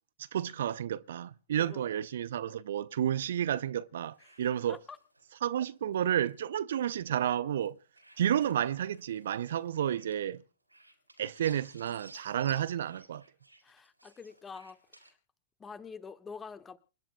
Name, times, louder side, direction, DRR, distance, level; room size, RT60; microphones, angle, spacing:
voice 1, 0.3-4.8 5.4-7.8 8.2-10.4 11.2-13.2, right 10 dB, 60° right, 0.6 m, -31 dB
voice 2, 1.6-1.9 4.7-5.0 13.6-14.8 15.6-16.8, left 5 dB, 20° left, 1.4 m, -46 dB
sound 1, 4.0-7.7 7.9-10.3 10.7-15.1, right 2 dB, 90° right, 3.9 m, -56 dB
28.0 x 11.0 x 2.2 m
figure-of-eight pair, 95°, 0 cm